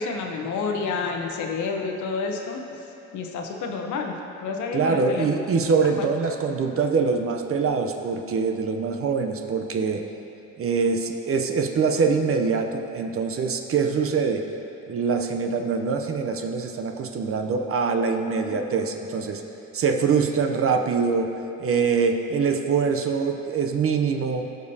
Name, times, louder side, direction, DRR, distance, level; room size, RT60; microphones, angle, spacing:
voice 1, 0.0-2.6 3.1-4.2 4.4-5.3 5.8-6.1 18.5-18.6, left 4 dB, 80° left, 3 dB, 0.9 m, -29 dB
voice 2, 4.7-10.0 10.6-14.4 14.9-19.4 19.7-21.3 21.6-24.5, right 5 dB, 50° right, 4 dB, 0.6 m, -24 dB
15.0 x 5.1 x 2.7 m, 2.9 s
cardioid pair, 90°, 30 cm